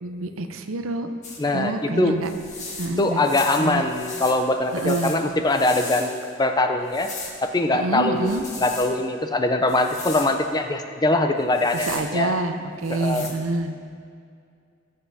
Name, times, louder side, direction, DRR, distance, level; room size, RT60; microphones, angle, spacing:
voice 1, 0.0-1.1 1.5-2.3 2.8-3.2 3.6-3.8 4.7-5.1 7.7-8.4 11.7-13.7, right 2 dB, 85° right, 7 dB, 0.7 m, -27 dB
sound 1, 1.2-1.4 2.2-6.3 6.9-7.4 8.2-8.9 9.7-10.3 11.4-12.1 12.8-13.3, left 3 dB, 35° left, 1.5 m, -37 dB
voice 2, 1.4-2.2 3.0-6.1 6.4-7.1 7.4-8.3 8.6-12.3 12.9-13.3, left 2 dB, 20° left, 6 dB, 0.5 m, -22 dB
19.5 x 7.7 x 2.8 m, 2.3 s
head